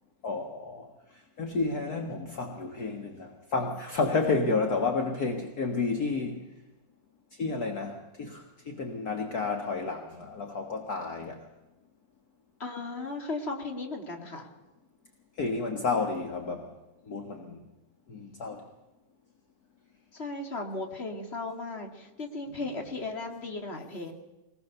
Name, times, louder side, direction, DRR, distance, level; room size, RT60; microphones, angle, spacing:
voice 1, 0.2-0.9 1.1-6.5 7.3-11.5 15.4-16.7 17.1-17.7 18.1-18.6, left 4 dB, 55° left, 3 dB, 2.1 m, -31 dB
voice 2, 12.6-14.5 20.1-24.1, left 3 dB, 35° left, 3 dB, 2.7 m, -36 dB
23.5 x 19.5 x 6.9 m, 1.0 s
omnidirectional pair, 2.0 m